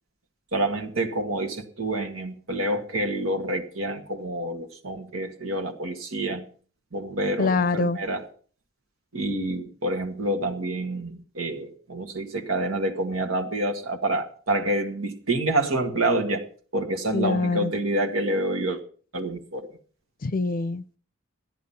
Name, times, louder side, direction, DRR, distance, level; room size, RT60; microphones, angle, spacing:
voice 1, 0.5-6.5 6.9-8.3 9.1-16.5 16.7-18.8 19.1-19.7, right 1 dB, 90° right, 1.8 m, -27 dB
voice 2, 7.4-8.0 17.1-17.7 20.2-21.0, left 3 dB, 45° left, 0.5 m, -24 dB
13.5 x 10.0 x 5.5 m
head